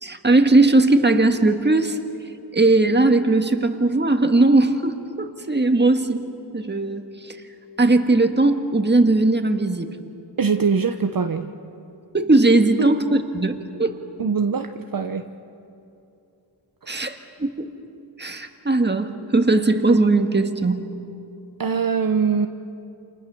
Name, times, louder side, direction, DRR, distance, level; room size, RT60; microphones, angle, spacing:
voice 1, 0.0-2.0 2.5-6.2 6.5-7.4 7.8-9.9 12.1-14.0 16.9-17.7 18.2-20.8, right 2 dB, 25° right, 6 dB, 1.8 m, -19 dB
voice 2, 10.4-11.5 12.8-12.9 14.2-15.3 16.8-17.1 21.6-22.5, right 5 dB, 50° right, 6 dB, 1.0 m, -22 dB
29.5 x 27.5 x 7.0 m, 2.7 s
wide cardioid pair, 95°, 44 cm